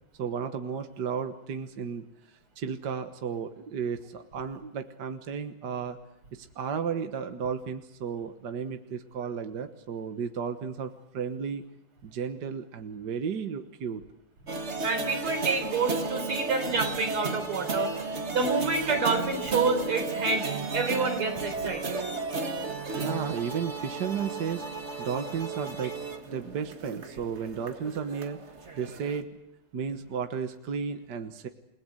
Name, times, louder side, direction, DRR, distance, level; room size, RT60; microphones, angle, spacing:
voice 1, 0.2-2.1 2.6-6.0 6.3-11.6 12.0-14.0 22.9-24.7 25.0-26.0 26.3-28.4 28.7-29.3 29.7-31.5, right 6 dB, 55° right, 7 dB, 1.8 m, -33 dB
sound 1, 14.5-29.2, right 3 dB, 35° right, 1.9 m, -34 dB
voice 2, 14.8-17.9 18.3-20.5 20.7-22.0 22.6-22.7, right 4 dB, 80° right, 6 dB, 4.8 m, -28 dB
29.0 x 20.0 x 8.0 m, 0.80 s
omnidirectional pair, 2.4 m